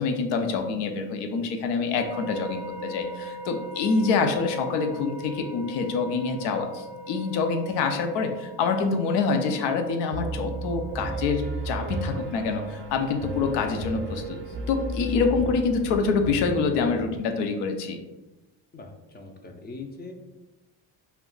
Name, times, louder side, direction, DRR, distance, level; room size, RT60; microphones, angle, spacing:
voice 1, 0.0-14.4 14.7-18.0, left 4 dB, 85° left, 5 dB, 0.6 m, -26 dB
sound 1, 2.0-13.5, right 1 dB, 85° right, 0.5 m, -41 dB
Piano, 10.1-17.2, right 2 dB, 30° right, 0.5 m, -34 dB
voice 2, 18.7-20.1, left 3 dB, 25° left, 4 dB, 0.4 m, -41 dB
2.3 x 2.2 x 3.7 m, 1.0 s
cardioid pair, 90°, 40 cm